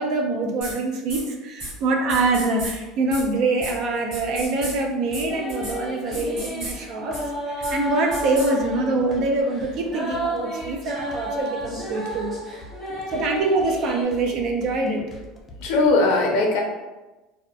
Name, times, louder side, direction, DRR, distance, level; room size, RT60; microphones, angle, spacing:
voice 1, 0.0-7.2 7.5-12.3 13.1-15.0, right 2 dB, 50° right, 2 dB, 0.4 m, -24 dB
sound 1, 0.6-0.7 1.1-1.2 1.6-1.7 2.1-2.7 3.1-3.2 3.6-3.7 4.1-4.7 5.1-5.2 5.5-5.7 6.1-6.7 7.1-7.2 7.6-7.7 8.1-8.5, right 1 dB, 75° right, 1.4 m, -33 dB
sound 2, 1.6-15.9, equal, 20° left, 0.4 m, -44 dB
sound 3, 5.3-14.0, right 1 dB, 10° right, 0.7 m, -32 dB
voice 2, 15.6-16.6, left 3 dB, 75° left, 0 dB, 0.6 m, -19 dB
2.7 x 2.2 x 2.3 m, 1.1 s
cardioid pair, 140°, 0 cm